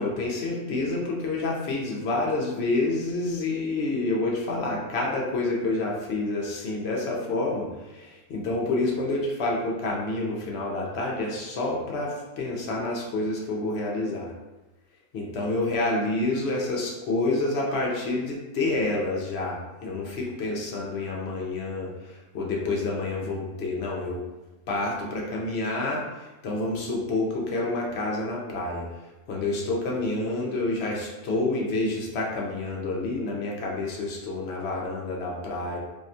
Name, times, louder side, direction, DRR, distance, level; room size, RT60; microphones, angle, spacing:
voice 1, 0.0-14.3 15.1-24.2 24.7-28.9 29.3-35.8, left 2 dB, 60° left, -2 dB, 0.8 m, -28 dB
3.5 x 2.2 x 2.7 m, 1.1 s
omnidirectional pair, 1.5 m